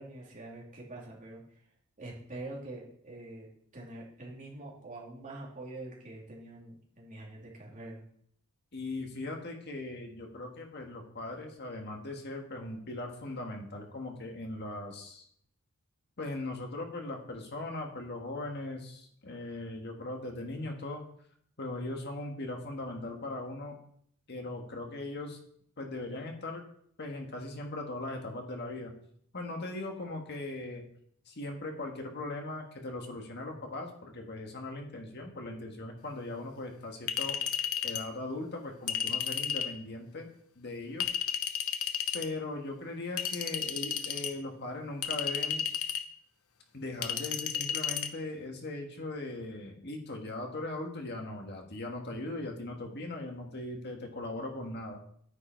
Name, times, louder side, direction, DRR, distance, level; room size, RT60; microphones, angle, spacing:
voice 1, 0.0-1.4 2.0-3.5 3.7-8.0, right 2 dB, 35° right, -3 dB, 2.9 m, -45 dB
voice 2, 8.7-15.3 16.2-21.0 21.6-23.8 24.3-25.4 25.8-26.6 27.0-28.9 29.3-30.8 31.2-37.4 37.8-40.3 40.5-41.1 42.1-45.6 46.7-55.0, left 2 dB, 50° left, 2 dB, 1.7 m, -39 dB
Chink clink, 37.1-38.1 38.9-39.7 41.0-42.3 43.2-44.3 45.0-46.1 47.0-48.1, left 8 dB, 80° left, 0.9 m, -33 dB
9.8 x 9.8 x 4.5 m, 0.66 s
head